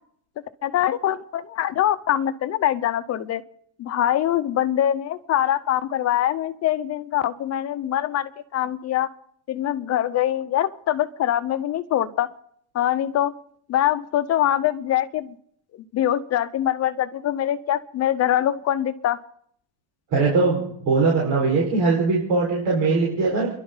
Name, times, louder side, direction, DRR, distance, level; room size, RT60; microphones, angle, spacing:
voice 1, 0.6-3.4 3.8-9.1 9.5-12.3 12.7-13.3 13.7-15.3 15.9-19.2, left 11 dB, 40° left, 12 dB, 0.9 m, -23 dB
voice 2, 20.1-23.5, right 3 dB, 65° right, -4 dB, 5.3 m, -21 dB
29.5 x 11.5 x 4.0 m, 0.68 s
cardioid pair, 160°, 39 cm